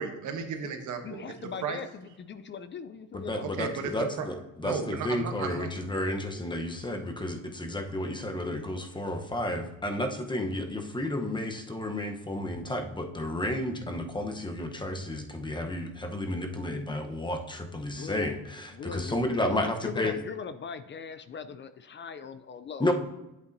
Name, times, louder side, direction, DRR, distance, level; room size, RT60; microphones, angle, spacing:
voice 1, 0.0-1.8 3.4-4.3 4.6-5.7, right 6 dB, 80° right, 6 dB, 1.0 m, -35 dB
voice 2, 1.0-3.7 17.8-22.9, left 6 dB, 40° left, 12 dB, 0.4 m, -40 dB
voice 3, 3.1-20.2 22.8-22.9, left 1 dB, 15° left, 5 dB, 0.9 m, -32 dB
8.3 x 7.9 x 2.7 m, 0.97 s
cardioid pair, 90°, 30 cm